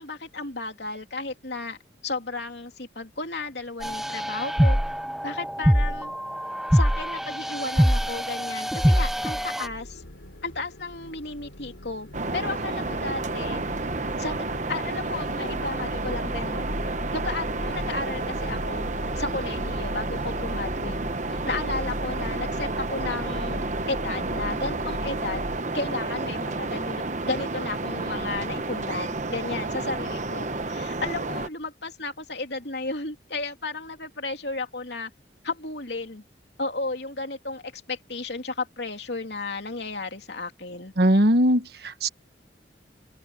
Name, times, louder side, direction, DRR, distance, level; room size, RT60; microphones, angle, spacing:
voice 1, 0.0-1.8 2.0-4.8 5.2-6.1 6.7-10.0 10.4-13.6 14.2-16.7 17.1-21.0 21.3-23.6 23.9-25.5 25.7-35.1 35.4-36.2 36.6-40.9, left 3 dB, 65° left, 3.0 m, -33 dB
sound 1, 3.8-9.7, equal, ahead, 0.4 m, -24 dB
sound 2, 9.6-25.6, left 1 dB, 90° left, 3.6 m, -38 dB
sound 3, 12.1-31.5, right 3 dB, 40° right, 1.0 m, -31 dB
voice 2, 41.0-42.1, equal, 60° right, 1.4 m, -20 dB
open air
head